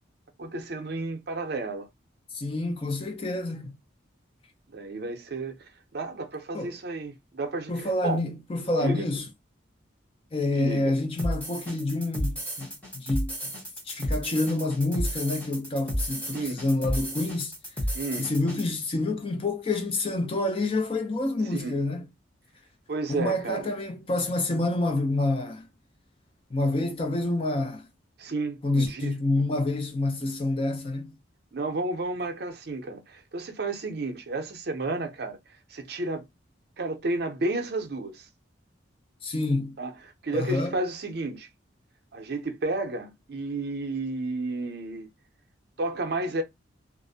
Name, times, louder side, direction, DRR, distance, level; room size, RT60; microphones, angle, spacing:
voice 1, 0.4-1.9 4.7-8.2 8.8-9.1 10.5-11.0 16.3-16.6 17.9-18.3 21.5-21.8 22.9-23.7 28.2-29.4 31.5-36.2 36.8-38.3 39.8-39.9 40.2-41.5 42.1-45.1 45.8-46.4, right 2 dB, 55° right, 0.5 m, -32 dB
voice 2, 2.3-3.7 6.5-6.8 7.7-9.3 10.3-13.5 13.9-17.5 18.2-22.0 23.1-25.7 26.5-27.9 28.6-31.1 39.2-39.8 40.3-40.7, left 2 dB, 30° left, 0.4 m, -28 dB
sound 1, 11.2-18.6, equal, 10° left, 0.8 m, -32 dB
2.4 x 2.0 x 2.6 m
head